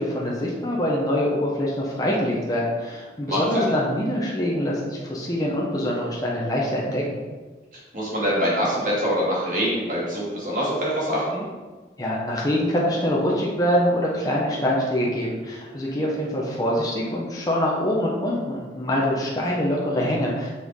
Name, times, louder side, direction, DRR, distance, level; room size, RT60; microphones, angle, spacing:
voice 1, 0.0-7.0 12.0-20.5, equal, 20° left, -4 dB, 1.0 m, -24 dB
voice 2, 3.3-3.7 7.9-11.4, equal, 45° right, -6 dB, 2.3 m, -24 dB
6.8 x 5.8 x 3.7 m, 1.3 s
head